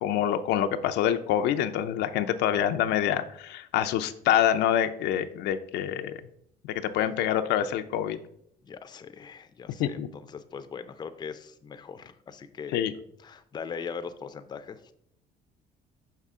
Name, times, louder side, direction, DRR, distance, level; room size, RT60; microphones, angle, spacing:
voice 1, 0.0-6.1 6.7-8.2 9.8-10.1 12.7-12.9, left 10 dB, 80° left, 9 dB, 0.5 m, -26 dB
voice 2, 8.6-12.9 13.2-14.8, left 6 dB, 25° left, 10 dB, 0.4 m, -40 dB
5.9 x 5.5 x 3.6 m, 0.71 s
cardioid pair, 110°, 17 cm